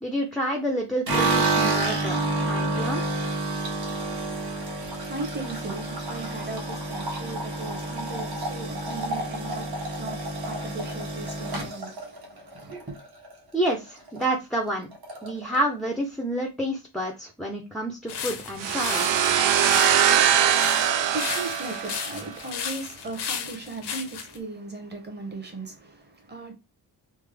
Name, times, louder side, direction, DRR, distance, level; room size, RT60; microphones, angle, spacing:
voice 1, 0.0-2.2 2.4-3.0 13.5-14.9 15.2-19.1, right 1 dB, ahead, 0.4 m, -29 dB
sound 1, 1.1-13.3 13.6-14.3 14.5-14.6 14.9-15.6, right 2 dB, 60° right, 1.2 m, -29 dB
voice 2, 4.8-13.0 20.5-26.5, right 2 dB, 25° right, 0.8 m, -38 dB
sound 2, 18.1-24.4, left 7 dB, 70° left, 0.7 m, -35 dB
sound 3, 18.6-22.3, right 9 dB, 85° right, 0.5 m, -22 dB
3.3 x 2.0 x 3.3 m
wide cardioid pair, 155°, 42 cm